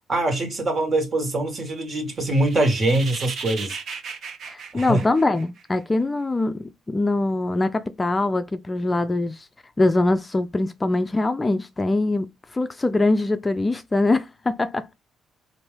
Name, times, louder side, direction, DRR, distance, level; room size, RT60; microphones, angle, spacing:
voice 1, 0.1-3.8 4.7-5.0, right 2 dB, 40° right, 1.5 m, -23 dB
sound 1, 2.2-5.8, right 5 dB, 65° right, 0.9 m, -36 dB
voice 2, 4.5-9.5 9.8-14.9, left 2 dB, 20° left, 0.4 m, -23 dB
4.3 x 2.6 x 3.2 m
cardioid pair, 90°, 0 cm